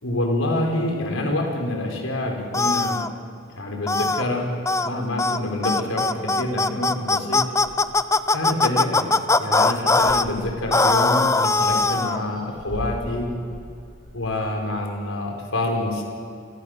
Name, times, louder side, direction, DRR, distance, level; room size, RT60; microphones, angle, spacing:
voice 1, 0.0-3.0 3.5-4.5 4.8-7.4 8.3-9.0 9.4-13.3 14.1-16.0, left 1 dB, 85° left, 2 dB, 5.4 m, -26 dB
sound 1, 2.5-3.1 3.9-4.2 4.7-4.9 5.2-5.4 5.6-10.2 10.7-12.2, left 3 dB, 15° left, 0.6 m, -20 dB
sound 2, 7.6-8.3 8.8-8.9 9.1-9.4 9.7-14.7, equal, ahead, 7.4 m, -40 dB
30.0 x 24.5 x 6.9 m, 2.3 s
head